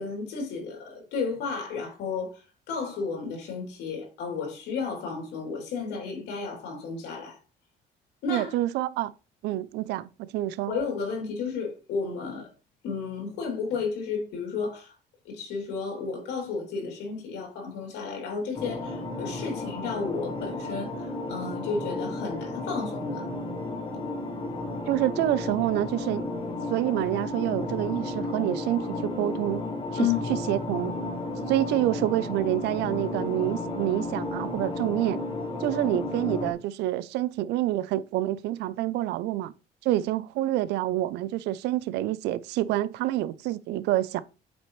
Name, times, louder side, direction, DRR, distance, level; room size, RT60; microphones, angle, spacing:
voice 1, 0.0-7.4 8.2-8.5 10.7-12.5 12.8-14.9 15.2-23.2 30.0-30.2, left 5 dB, 85° left, 3.1 m, -32 dB
voice 2, 8.3-9.1 9.4-10.7 24.9-26.2 26.7-29.6 30.0-30.9 31.5-35.2 35.6-39.5 39.8-44.2, right 14 dB, 85° right, 0.5 m, -27 dB
sound 1, 18.5-36.5, left 2 dB, 30° left, 1.6 m, -33 dB
8.3 x 5.7 x 3.2 m
cardioid pair, 110°, 17 cm